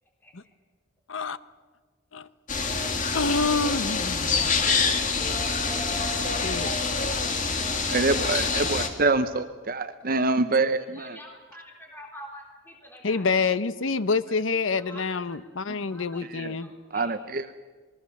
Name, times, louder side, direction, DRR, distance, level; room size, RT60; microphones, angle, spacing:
sound 1, 2.5-8.9, left 4 dB, 40° left, 2.2 m, -26 dB
voice 1, 3.1-4.6 6.4-6.7 13.0-16.7, left 4 dB, 80° left, 14 dB, 0.9 m, -27 dB
voice 2, 7.9-11.2 16.2-16.5 16.9-17.5, right 3 dB, 45° right, 10 dB, 0.8 m, -25 dB
voice 3, 10.9-13.3 14.8-15.4 15.9-17.1, equal, 10° left, 0 dB, 3.7 m, -47 dB
27.0 x 21.0 x 7.2 m, 1.4 s
head